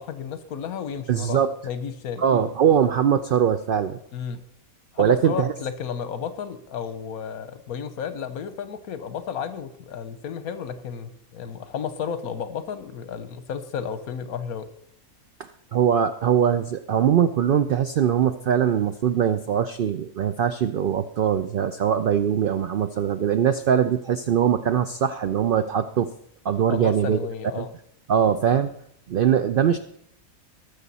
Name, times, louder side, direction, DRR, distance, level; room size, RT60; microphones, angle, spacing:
voice 1, 0.0-2.5 4.1-4.4 4.9-14.7 26.7-27.7, left 7 dB, 80° left, 11 dB, 1.3 m, -33 dB
voice 2, 1.1-1.5 2.2-4.0 5.0-5.5 15.4-26.1 26.4-27.2 27.6-27.7 28.1-28.7 29.1-29.8, right 8 dB, 85° right, 10 dB, 0.4 m, -22 dB
19.0 x 6.6 x 4.1 m, 0.69 s
omnidirectional pair, 1.5 m